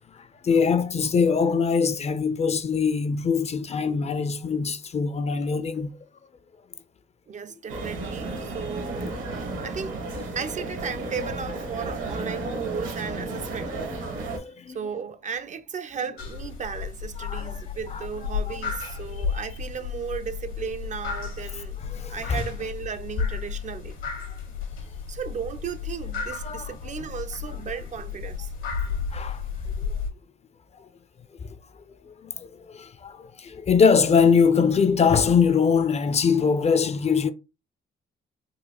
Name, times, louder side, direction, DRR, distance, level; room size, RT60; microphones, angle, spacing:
voice 1, 0.0-6.0 14.0-14.8 17.2-17.5 17.9-18.6 21.9-22.4 26.4-26.7 29.1-29.4 29.8-30.0 31.4-31.5 32.1-37.3, left 6 dB, 35° left, 0.4 m, -23 dB
voice 2, 7.3-9.3 9.6-10.0 10.3-13.7 14.2-14.4 14.7-21.8 22.1-24.0 25.1-28.5, right 6 dB, 40° right, 0.4 m, -35 dB
sound 1, 7.7-14.4, right 2 dB, 75° right, 1.1 m, -33 dB
sound 2, 16.2-30.1, left 6 dB, 80° left, 1.2 m, -33 dB
3.9 x 2.3 x 2.9 m
cardioid pair, 90°, 20 cm